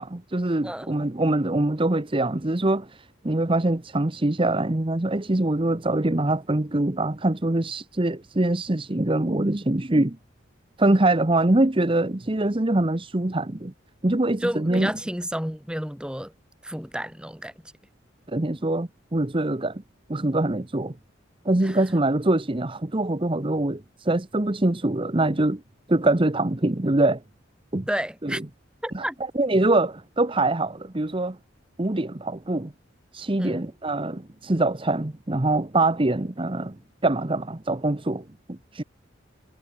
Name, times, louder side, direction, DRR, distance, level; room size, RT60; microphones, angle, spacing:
voice 1, 0.0-10.2 10.8-13.7 14.0-14.9 18.3-19.8 20.1-21.0 21.4-25.6 25.9-27.2 27.7-27.9 28.2-28.4 28.9-29.1 29.3-31.4 31.8-32.7 33.1-38.8, right 2 dB, 25° right, 1.0 m, -24 dB
voice 2, 0.6-1.0 14.4-16.3 16.6-17.5 21.6-21.8 27.9-28.4 28.8-29.2 33.4-33.7, equal, 5° right, 4.1 m, -31 dB
head